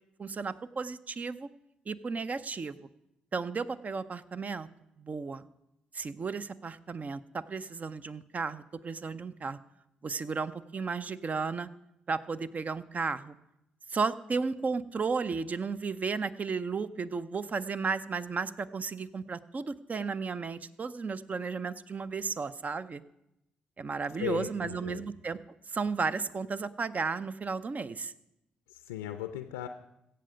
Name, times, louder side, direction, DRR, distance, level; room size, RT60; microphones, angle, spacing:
voice 1, 0.2-1.5 1.9-2.9 3.3-4.7 5.0-5.4 5.9-9.6 10.0-11.7 12.1-13.4 13.9-23.0 23.8-25.4 25.7-28.1, right 4 dB, 40° right, 15 dB, 0.6 m, -34 dB
voice 2, 24.2-25.0 28.7-29.7, left 12 dB, 85° left, 9 dB, 0.4 m, -37 dB
16.0 x 6.8 x 5.1 m, 0.85 s
hypercardioid pair, 45°, 4 cm